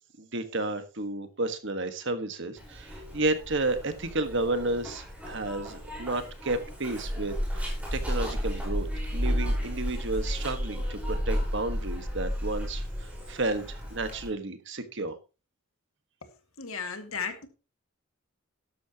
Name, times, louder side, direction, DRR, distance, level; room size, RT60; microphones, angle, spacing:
voice 1, 0.2-8.9 9.1-15.2, right 2 dB, 55° right, 1.5 m, -32 dB
Zipper (clothing), 2.6-14.3, equal, 5° right, 4.7 m, -33 dB
voice 2, 16.6-17.5, left 5 dB, 70° left, 2.0 m, -35 dB
13.0 x 11.5 x 2.9 m
head